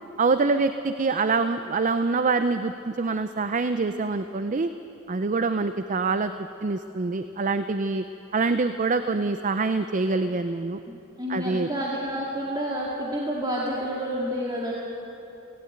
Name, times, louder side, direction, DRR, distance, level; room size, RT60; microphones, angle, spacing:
voice 1, 0.2-4.7 5.1-8.0 8.3-10.8 11.3-11.7, right 4 dB, 40° right, 10 dB, 0.5 m, -25 dB
voice 2, 11.2-14.7, equal, 20° right, -4 dB, 2.1 m, -29 dB
17.5 x 17.5 x 8.9 m, 3.0 s
head